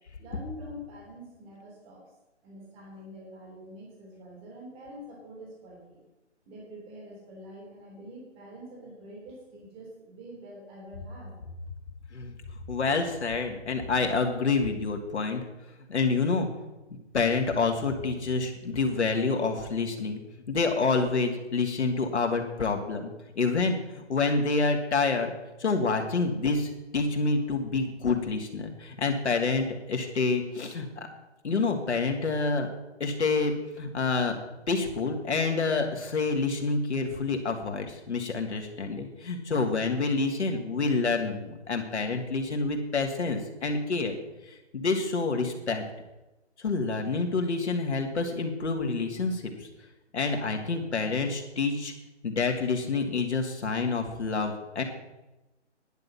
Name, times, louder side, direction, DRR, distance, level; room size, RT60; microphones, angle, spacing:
voice 1, 0.2-2.0 2.4-6.0 6.5-11.3, equal, 15° right, -2 dB, 3.1 m, -46 dB
voice 2, 12.7-15.5 15.9-16.5 17.1-20.2 20.5-23.1 23.4-25.3 25.6-31.1 31.4-32.7 33.0-34.4 34.7-44.2 44.5-45.8 46.6-49.7 50.1-51.9 52.2-54.8, left 4 dB, 70° left, 3 dB, 2.6 m, -28 dB
10.5 x 10.0 x 5.8 m, 1.0 s
hypercardioid pair, 155°, 35 cm